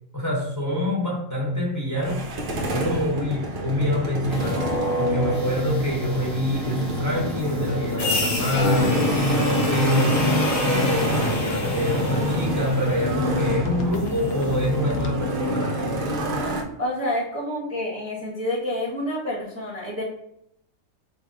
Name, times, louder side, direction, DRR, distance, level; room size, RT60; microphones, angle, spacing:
voice 1, 0.1-2.2 2.7-10.3 10.6-16.1, left 1 dB, 15° left, -4 dB, 1.0 m, -26 dB
Motorcycle, 2.0-16.6, equal, 55° right, 0.6 m, -27 dB
sound 1, 4.3-14.4, left 2 dB, 50° left, 0.4 m, -30 dB
sound 2, 11.6-15.2, left 2 dB, 75° left, 0.9 m, -35 dB
voice 2, 16.8-20.0, left 1 dB, 15° right, -7 dB, 0.8 m, -28 dB
4.6 x 2.6 x 3.6 m, 0.76 s
omnidirectional pair, 1.4 m